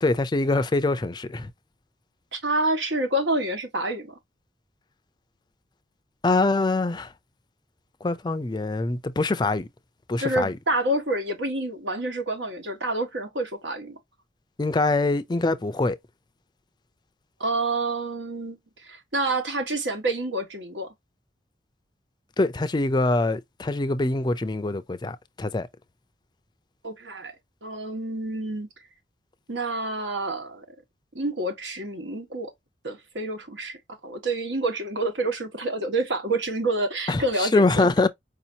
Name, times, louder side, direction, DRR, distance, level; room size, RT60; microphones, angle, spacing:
voice 1, 0.0-1.5 6.2-7.1 8.0-9.7 10.1-10.6 14.6-16.0 22.4-25.7 37.1-38.1, left 2 dB, 25° left, 0.4 m, -24 dB
voice 2, 2.3-4.2 10.2-14.0 17.4-20.9 26.8-27.3 27.6-28.7 29.5-30.6 31.1-32.5 32.8-33.8 34.0-37.9, right 2 dB, 80° right, 1.4 m, -28 dB
4.9 x 2.8 x 2.7 m
head